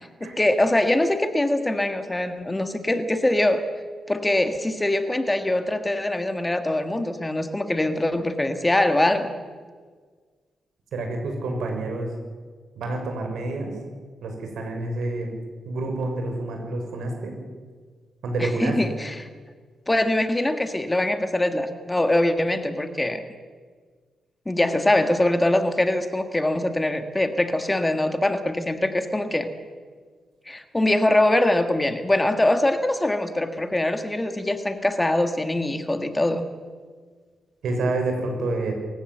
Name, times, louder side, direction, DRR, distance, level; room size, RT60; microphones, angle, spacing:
voice 1, 0.2-3.6 4.1-9.3 18.4-19.3 19.9-23.2 24.4-29.5 30.5-36.5, left 1 dB, 15° left, 8 dB, 1.7 m, -23 dB
voice 2, 10.9-12.1 12.8-13.8 14.2-15.3 15.7-17.3 18.2-18.8 37.6-38.7, right 2 dB, 80° right, 3 dB, 6.0 m, -28 dB
26.5 x 15.5 x 7.9 m, 1.6 s
cardioid pair, 95°, 0 cm